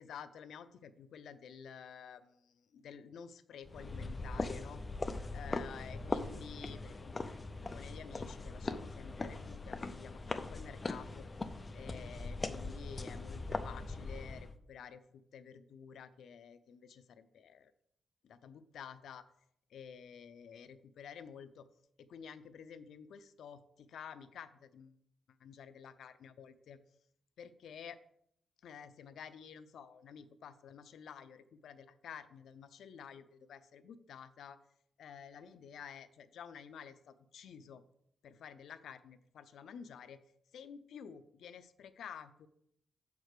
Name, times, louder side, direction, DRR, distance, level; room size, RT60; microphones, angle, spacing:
voice 1, 0.0-4.8 5.3-11.3 11.7-17.7 18.2-19.3 19.7-21.7 22.0-25.0 25.4-26.8 27.4-28.0 28.6-34.6 35.0-37.8 38.2-40.2 40.5-42.5, left 7 dB, 75° left, 12 dB, 0.5 m, -51 dB
sound 1, 3.6-14.6, left 3 dB, 20° left, 0.5 m, -41 dB
7.2 x 4.7 x 6.6 m, 0.72 s
wide cardioid pair, 175°, 0 cm